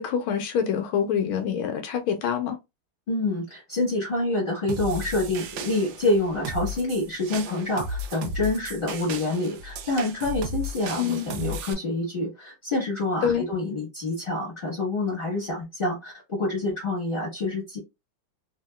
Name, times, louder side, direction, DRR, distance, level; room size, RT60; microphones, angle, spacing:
voice 1, 0.0-2.6 11.0-11.2 13.2-13.5, left 8 dB, 80° left, 1.4 m, -26 dB
voice 2, 3.1-17.8, left 2 dB, 30° left, 1.3 m, -27 dB
sound 1, 4.7-11.7, right 1 dB, 75° right, 1.1 m, -35 dB
3.4 x 2.7 x 2.2 m
omnidirectional pair, 2.4 m